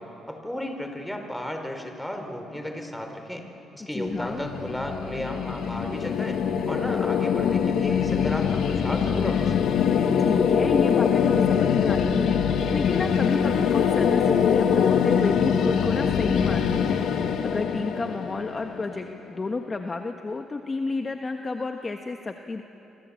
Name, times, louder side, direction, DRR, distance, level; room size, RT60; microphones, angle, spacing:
voice 1, 0.0-3.5 3.7-9.8, equal, 5° left, 5 dB, 4.1 m, -34 dB
voice 2, 3.8-4.4 10.2-22.6, left 3 dB, 30° left, 5 dB, 1.3 m, -31 dB
sound 1, 4.1-19.1, left 7 dB, 75° left, 1.8 m, -23 dB
27.0 x 24.5 x 8.6 m, 3.0 s
cardioid pair, 90°, 0 cm